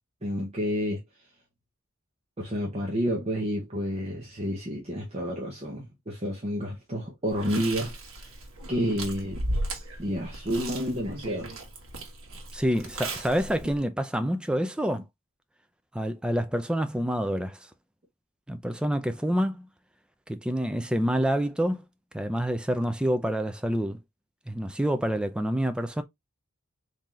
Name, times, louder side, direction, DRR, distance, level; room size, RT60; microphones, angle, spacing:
voice 1, 0.2-1.0 2.4-8.4 8.7-9.4 10.0-11.5, equal, 30° right, 0.8 m, -30 dB
Chewing mastication, 7.3-13.8, right 1 dB, 75° right, 1.2 m, -36 dB
voice 2, 12.5-15.0 15.9-17.6 18.5-19.7 20.3-21.8 22.1-24.0 24.5-26.0, equal, 5° right, 0.3 m, -27 dB
3.8 x 2.7 x 3.0 m
head